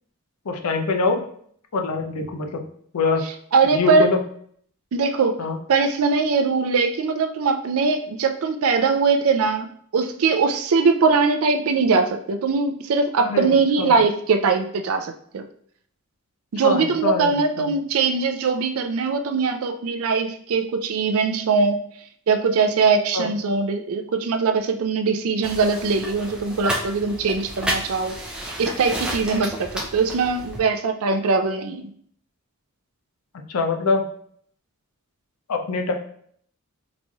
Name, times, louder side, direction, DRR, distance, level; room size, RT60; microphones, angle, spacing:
voice 1, 0.5-1.2 1.7-2.7 2.9-3.3 3.7-4.2 5.4-5.6 13.2-13.9 16.6-17.7 23.1-23.3 33.3-34.1 35.5-35.9, left 4 dB, 80° left, 4 dB, 0.5 m, -24 dB
voice 2, 3.5-4.1 4.9-5.4 5.7-15.4 16.5-21.8 22.3-28.2 28.6-31.9, right 4 dB, 70° right, 6 dB, 0.4 m, -21 dB
sound 1, 25.4-30.6, right 1 dB, 5° right, 0.4 m, -31 dB
4.0 x 3.0 x 2.3 m, 0.62 s
head